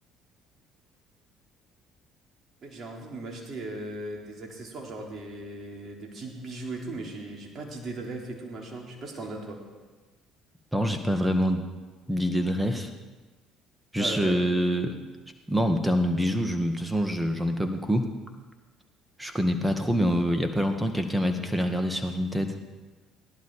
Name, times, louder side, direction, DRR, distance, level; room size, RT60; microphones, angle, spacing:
voice 1, 2.6-9.6 14.0-14.4, right 2 dB, 45° right, -1 dB, 3.8 m, -38 dB
voice 2, 10.7-11.6 12.1-12.9 13.9-15.0 15.5-18.1 19.2-22.5, equal, 10° right, 5 dB, 1.9 m, -26 dB
17.5 x 11.5 x 5.0 m, 1.3 s
supercardioid pair, 70°, 0 cm